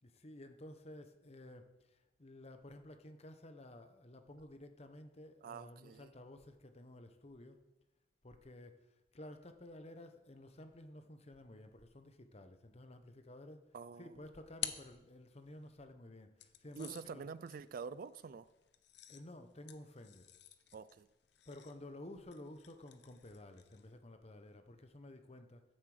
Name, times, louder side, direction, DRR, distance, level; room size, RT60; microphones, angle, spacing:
voice 1, 0.0-7.6 8.2-13.6 14.0-17.2 19.1-20.2 21.5-25.6, left 1 dB, 35° left, 8 dB, 0.9 m, -53 dB
voice 2, 5.4-6.1 13.7-14.2 16.8-18.5 20.7-21.1, right 5 dB, 50° right, 17 dB, 0.3 m, -47 dB
sound 1, 13.9-15.7 16.4-24.0, left 11 dB, 65° left, 0.8 m, -51 dB
14.5 x 7.5 x 4.9 m, 1.0 s
head